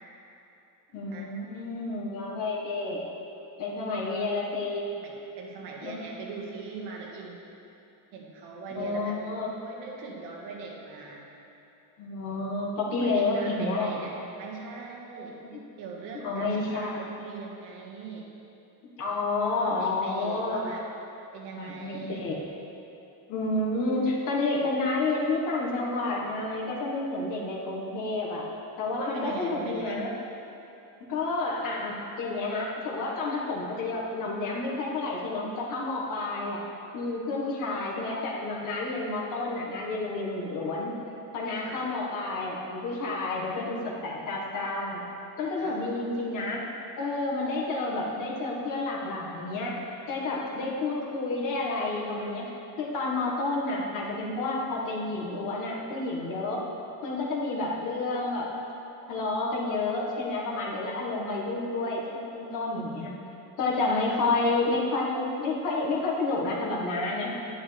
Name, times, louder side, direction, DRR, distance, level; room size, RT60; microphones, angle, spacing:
voice 1, 0.9-3.0 3.6-4.9 5.8-6.1 8.7-9.5 12.0-14.1 16.2-17.0 19.0-20.7 21.6-22.4 23.3-28.4 28.8-30.1 31.1-36.6 36.9-40.9 41.3-45.0 45.4-46.7 47.0-49.8 50.1-52.4 52.8-56.7 57.0-58.5 59.1-63.1 63.6-67.3, left 2 dB, 50° left, -3 dB, 1.8 m, -30 dB
voice 2, 4.9-7.4 8.1-9.2 9.6-11.2 13.0-15.4 15.8-18.3 19.6-20.9 21.3-22.3 28.9-30.0 41.6-41.8 45.6-45.8 64.1-64.3, right 4 dB, 85° right, -1 dB, 1.9 m, -41 dB
11.0 x 10.0 x 3.5 m, 2.9 s
cardioid pair, 170°, 40 cm